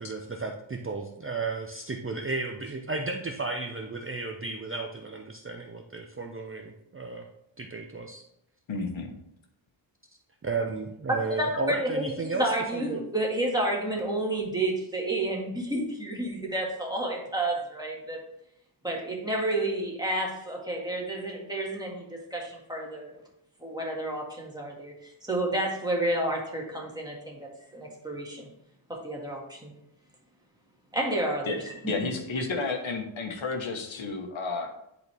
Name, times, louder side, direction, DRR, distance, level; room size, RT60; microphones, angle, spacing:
voice 1, 0.0-7.3 7.6-8.2 10.4-13.0, right 3 dB, 25° right, 2 dB, 0.6 m, -33 dB
voice 2, 8.7-9.1 31.5-31.6 31.9-34.7, left 3 dB, 70° left, 3 dB, 1.3 m, -31 dB
voice 3, 11.1-18.2 18.8-22.0 22.3-23.1 23.6-24.9 25.3-27.4 27.7-28.5 28.9-29.7 30.9-31.5, right 1 dB, 10° right, -2 dB, 1.9 m, -30 dB
10.5 x 4.2 x 3.4 m, 0.80 s
wide cardioid pair, 145°, 49 cm